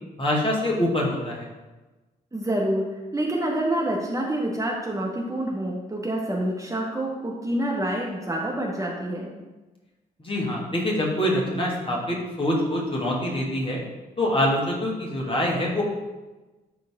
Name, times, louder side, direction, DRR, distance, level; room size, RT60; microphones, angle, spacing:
voice 1, 0.2-1.5 10.2-13.8 14.2-15.8, left 1 dB, 25° left, -3 dB, 2.6 m, -25 dB
voice 2, 2.3-2.8 3.1-9.3, right 1 dB, 15° right, -3 dB, 1.5 m, -27 dB
11.5 x 4.0 x 3.8 m, 1.1 s
figure-of-eight pair, 40°, 21 cm